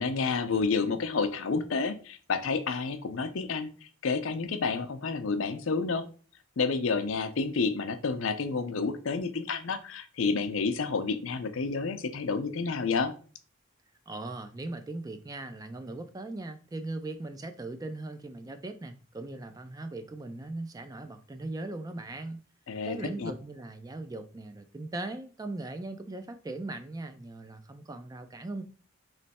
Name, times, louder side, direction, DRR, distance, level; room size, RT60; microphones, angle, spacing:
voice 1, 0.0-3.7 4.0-6.0 6.6-13.1 22.7-23.3, left 4 dB, 65° left, 0.5 m, -30 dB
voice 2, 14.1-22.4 22.8-28.6, right 2 dB, 15° right, 0.3 m, -39 dB
3.2 x 3.0 x 4.2 m
head